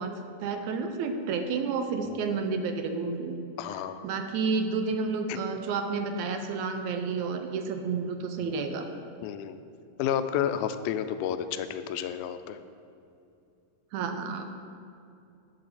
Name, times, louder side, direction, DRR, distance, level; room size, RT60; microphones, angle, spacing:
voice 1, 0.0-3.4 4.0-8.9 13.9-14.4, right 4 dB, 80° right, 6 dB, 1.8 m, -30 dB
voice 2, 3.6-4.1 5.3-5.4 8.4-8.7 9.2-9.6 10.0-12.6, left 9 dB, 80° left, 10 dB, 1.9 m, -31 dB
10.5 x 7.7 x 4.2 m, 2.6 s
omnidirectional pair, 3.7 m